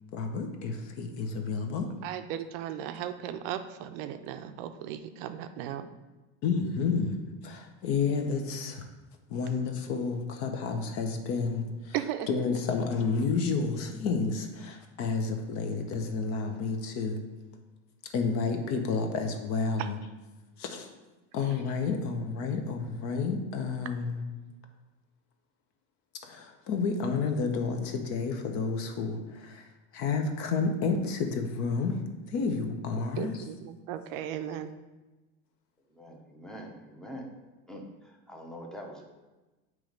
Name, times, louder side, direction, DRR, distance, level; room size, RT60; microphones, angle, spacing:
voice 1, 0.1-1.9 6.4-7.2 7.4-8.8 9.3-11.9 12.3-17.2 18.1-20.0 20.6-20.9 21.3-24.2 26.2-29.7 29.9-32.0 32.3-33.4, left 4 dB, 50° left, 5 dB, 0.8 m, -30 dB
voice 2, 2.0-5.9 11.9-12.3 19.8-19.9 33.2-34.7, right 10 dB, 65° right, 9 dB, 0.5 m, -36 dB
voice 3, 35.9-37.3 37.7-39.0, equal, ahead, 0 dB, 0.7 m, -44 dB
7.6 x 3.1 x 5.1 m, 1.1 s
supercardioid pair, 150°, 30 cm